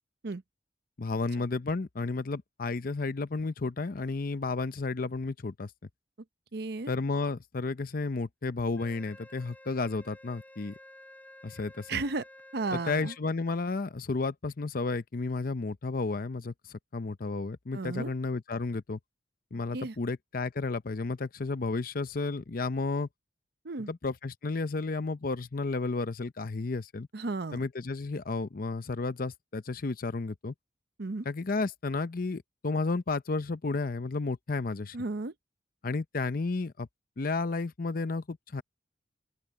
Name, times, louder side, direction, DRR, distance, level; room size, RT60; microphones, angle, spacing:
voice 1, 1.0-5.7 6.9-10.7 11.4-12.0 12.7-19.0 19.5-23.1 23.9-27.1 27.5-30.5 31.2-35.0 35.8-36.9 37.2-38.6, left 3 dB, 50° left, 0.7 m, -32 dB
voice 2, 6.5-6.9 11.9-12.2 12.5-13.1 17.7-18.1 19.7-19.9 23.6-23.9 27.1-27.6 31.0-31.3 34.9-35.3, right 3 dB, 60° right, 0.8 m, -33 dB
Wind instrument woodwind instrument, 8.8-13.2, left 1 dB, 10° left, 6.2 m, -52 dB
open air
head